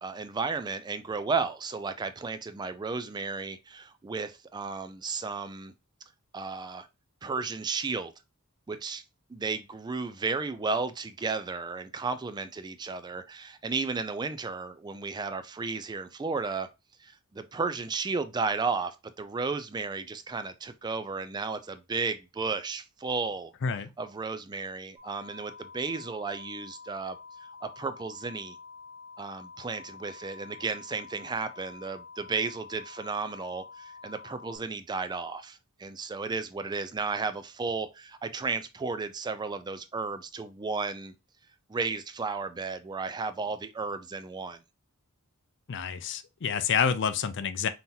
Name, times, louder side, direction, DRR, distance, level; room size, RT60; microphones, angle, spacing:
voice 1, 0.0-5.7 6.3-6.9 7.2-8.1 8.7-9.0 9.3-16.7 17.0-23.5 24.0-28.6 29.2-41.1 41.7-44.6, right 4 dB, 20° right, 0.3 m, -33 dB
sound 1, 25.0-34.6, left 5 dB, 75° left, 1.9 m, -48 dB
voice 2, 45.7-47.7, left 7 dB, 55° left, 0.4 m, -28 dB
5.5 x 2.9 x 2.6 m
head